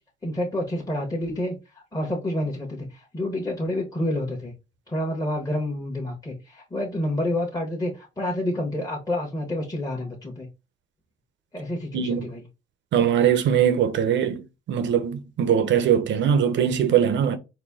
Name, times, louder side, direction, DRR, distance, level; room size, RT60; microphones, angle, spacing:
voice 1, 0.2-4.5 4.9-10.5 11.5-12.4, left 1 dB, 15° left, 1.2 m, -29 dB
voice 2, 11.9-12.3 12.9-14.4 14.7-17.4, right 8 dB, 60° right, 0.7 m, -21 dB
4.1 x 2.2 x 3.6 m
supercardioid pair, 65°, 21 cm